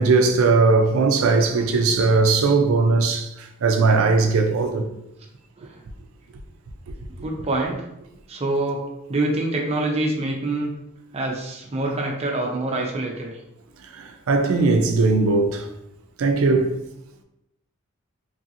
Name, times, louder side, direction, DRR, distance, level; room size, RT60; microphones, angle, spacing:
voice 1, 0.0-4.9 13.9-15.7 16.2-16.8, right 3 dB, 85° right, 0.4 m, -19 dB
voice 2, 7.2-7.9 8.3-10.7 11.1-13.3, right 2 dB, 30° right, 0.5 m, -25 dB
3.0 x 2.5 x 2.8 m
head